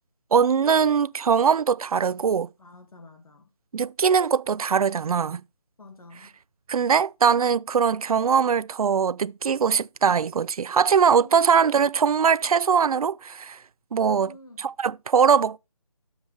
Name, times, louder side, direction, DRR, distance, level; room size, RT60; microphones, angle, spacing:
voice 1, 0.3-2.5 3.7-5.4 6.7-13.6 13.9-14.3 14.6-15.6, right 6 dB, 75° right, 0.4 m, -21 dB
voice 2, 2.6-3.5 5.8-6.3 11.0-11.6 14.0-14.6, left 2 dB, 75° left, 2.5 m, -48 dB
9.3 x 7.2 x 3.3 m
figure-of-eight pair, 170°, 19 cm